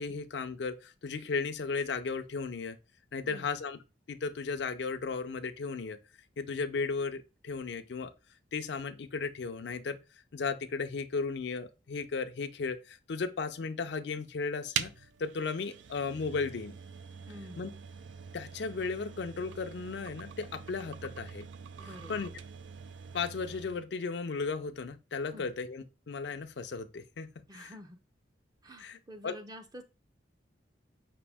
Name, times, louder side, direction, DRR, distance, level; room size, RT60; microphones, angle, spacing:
voice 1, 0.0-2.8 3.1-3.8 4.1-6.0 6.4-8.1 8.5-10.0 10.3-14.9 15.2-16.8 17.6-17.7 18.3-21.5 22.1-22.3 23.1-27.7 28.8-29.0 29.2-29.4, left 4 dB, 65° left, 0.4 m, -35 dB
sound 1, 14.7-23.9, right 7 dB, 85° right, 0.4 m, -43 dB
voice 2, 17.3-17.7 21.8-22.2 25.3-25.5 27.5-28.0 28.6-29.8, equal, 20° right, 0.5 m, -48 dB
5.1 x 2.6 x 3.4 m
head